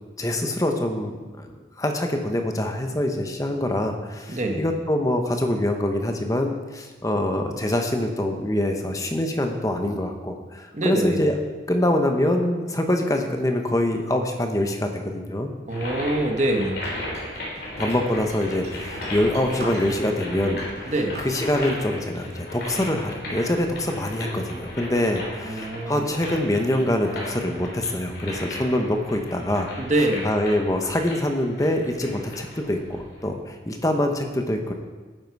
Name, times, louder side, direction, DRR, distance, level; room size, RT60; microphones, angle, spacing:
voice 1, 0.2-1.5 1.8-11.3 11.7-15.5 17.8-29.7 30.2-34.7, left 1 dB, 20° left, 4 dB, 1.0 m, -25 dB
voice 2, 4.3-4.6 10.7-11.2 15.7-16.8 20.8-21.2 25.4-26.2 29.8-30.3, right 1 dB, 40° right, 3 dB, 1.3 m, -24 dB
sound 1, 15.7-33.2, left 1 dB, 55° left, 3.6 m, -36 dB
sound 2, 16.8-20.1 20.5-21.5, right 1 dB, 60° right, 2.9 m, -39 dB
11.0 x 9.4 x 4.7 m, 1.3 s
head